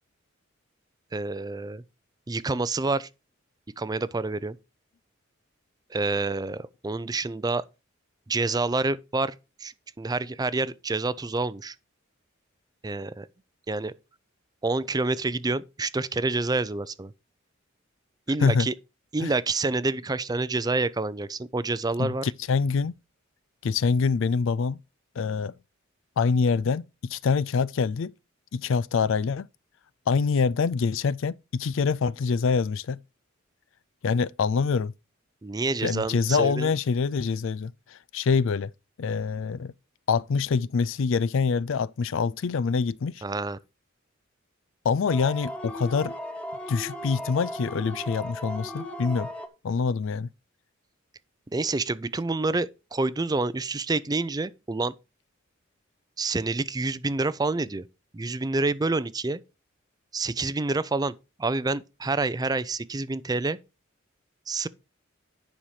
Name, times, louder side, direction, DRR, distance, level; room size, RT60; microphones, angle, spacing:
voice 1, 1.1-1.8 2.3-3.1 3.8-4.6 5.9-7.6 8.3-9.3 9.6-11.7 12.8-13.3 13.7-13.9 14.6-17.1 18.3-18.7 19.1-22.2 35.4-36.7 43.2-43.6 51.5-54.9 56.2-57.8 58.1-59.4 60.1-63.6 64.5-64.7, right 3 dB, 20° right, 0.4 m, -28 dB
voice 2, 22.0-22.9 23.6-24.8 25.2-25.5 26.2-28.1 28.5-29.5 30.1-33.0 34.0-34.9 35.8-38.7 39.0-39.7 40.1-43.2 44.8-46.1 46.7-49.3 49.6-50.3, left 5 dB, 65° left, 0.4 m, -25 dB
sound 1, 45.1-49.5, equal, 5° left, 1.3 m, -36 dB
10.0 x 5.7 x 4.8 m
head